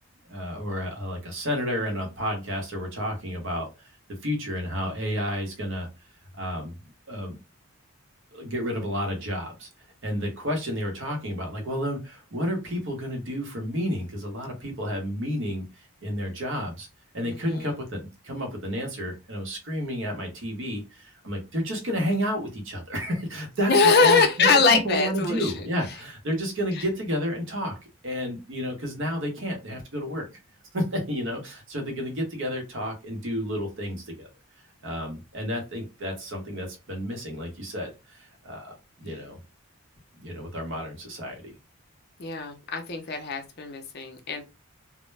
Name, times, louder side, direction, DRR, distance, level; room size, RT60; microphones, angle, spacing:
voice 1, 0.3-3.9 4.2-5.9 6.3-6.7 7.1-7.4 8.3-9.7 10.0-16.9 17.1-24.2 24.7-27.8 28.0-30.3 30.7-34.3 34.8-39.4 40.2-41.5, equal, 55° right, 2 dB, 0.8 m, -31 dB
voice 2, 17.2-17.7 23.7-25.5 26.8-26.9 39.1-39.2 42.2-44.4, left 4 dB, 45° left, 5 dB, 0.5 m, -22 dB
2.1 x 2.0 x 3.1 m, 0.27 s
head